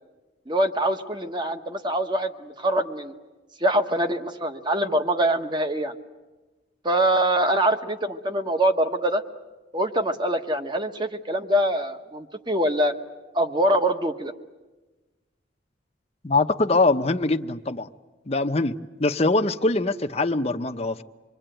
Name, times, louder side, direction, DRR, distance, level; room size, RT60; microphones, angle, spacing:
voice 1, 0.5-3.1 3.6-5.9 6.8-9.2 9.7-12.9 13.3-14.3, right 1 dB, 25° right, 1.3 m, -24 dB
voice 2, 16.2-17.9 18.3-21.0, left 2 dB, 35° left, 0.8 m, -23 dB
26.5 x 22.5 x 9.1 m
head